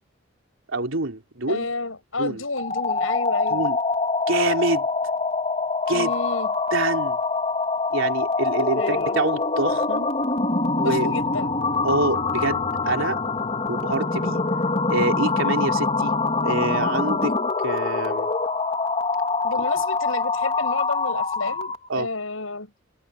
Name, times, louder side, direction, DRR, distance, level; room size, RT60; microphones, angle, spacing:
voice 1, 0.7-1.7 2.2-2.4 3.5-3.8 4.3-4.9 5.9-6.1 6.7-7.2 7.9-10.1 10.8-11.1 11.8-13.2 13.7-14.4 14.9-16.2 16.4-17.3 17.6-18.3 21.9-22.1, right 2 dB, 75° right, 3.5 m, -26 dB
voice 2, 1.5-3.7 5.9-6.6 8.8-9.2 10.8-11.6 19.4-22.7, left 3 dB, 85° left, 6.9 m, -30 dB
sound 1, 2.5-21.9, left 3 dB, 30° left, 3.5 m, -24 dB
head